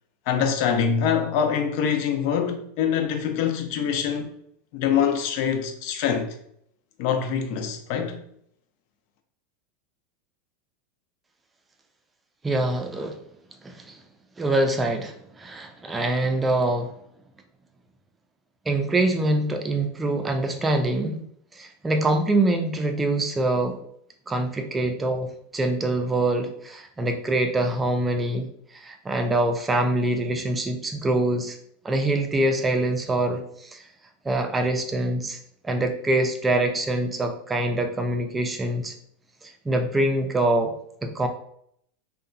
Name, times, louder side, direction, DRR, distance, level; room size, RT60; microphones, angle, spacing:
voice 1, 0.3-4.4 4.7-6.3 7.0-8.2, left 7 dB, 60° left, 0.5 m, -24 dB
voice 2, 12.4-13.2 13.6-14.0 14.4-17.0 18.7-21.2 21.5-23.8 24.3-28.5 28.7-31.6 31.8-33.8 34.2-35.4 35.6-38.9 39.4-40.7 41.0-41.3, right 2 dB, 15° right, 0.4 m, -24 dB
2.7 x 2.2 x 2.5 m
hypercardioid pair, 105°, 0 cm